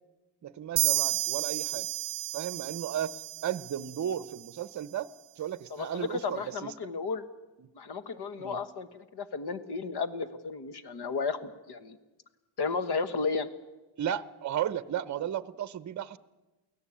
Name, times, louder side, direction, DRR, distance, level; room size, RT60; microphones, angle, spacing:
voice 1, 0.4-1.9 2.3-5.1 5.4-6.7 7.6-7.7 8.4-8.6 14.0-16.2, right 10 dB, 40° right, 16 dB, 0.7 m, -34 dB
sound 1, 0.8-4.3, right 17 dB, 80° right, 0.6 m, -32 dB
voice 2, 5.7-7.2 7.7-12.0 12.6-13.5, left 4 dB, 55° left, 12 dB, 1.4 m, -33 dB
24.0 x 16.5 x 8.5 m, 1.1 s
cardioid pair, 145°, 47 cm